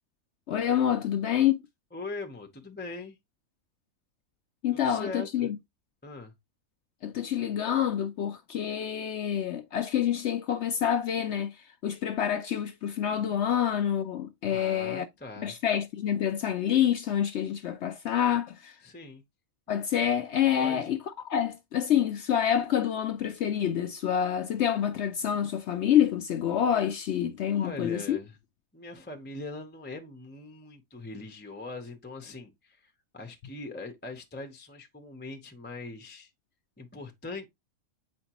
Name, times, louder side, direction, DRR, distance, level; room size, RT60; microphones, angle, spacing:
voice 1, 0.5-1.6 4.6-5.6 7.0-11.5 11.8-15.1 15.4-18.8 19.7-21.0 21.2-28.2, left 9 dB, 65° left, 0.7 m, -27 dB
voice 2, 1.9-3.2 4.7-5.5 6.0-6.3 14.5-15.5 18.8-19.2 20.6-20.9 27.5-28.3 28.7-36.3 36.8-37.5, left 3 dB, 10° left, 0.6 m, -41 dB
7.6 x 4.3 x 2.9 m
omnidirectional pair, 1.5 m